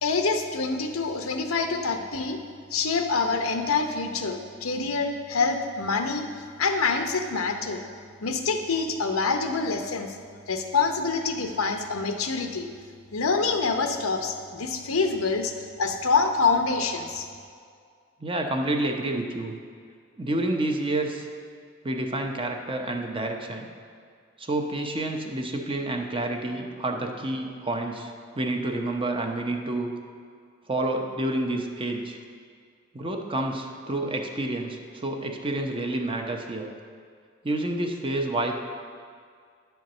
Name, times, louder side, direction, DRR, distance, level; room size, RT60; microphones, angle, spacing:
voice 1, 0.0-2.4 2.7-6.2 6.6-7.8 8.2-10.2 10.5-12.7 13.1-15.5 15.8-17.3, left 4 dB, 85° left, 5 dB, 0.8 m, -26 dB
voice 2, 18.2-19.5 20.2-21.3 21.8-23.7 24.4-29.9 30.7-32.2 32.9-36.7 37.4-38.5, right 2 dB, 25° right, 3 dB, 0.7 m, -29 dB
10.5 x 4.6 x 6.6 m, 2.2 s
head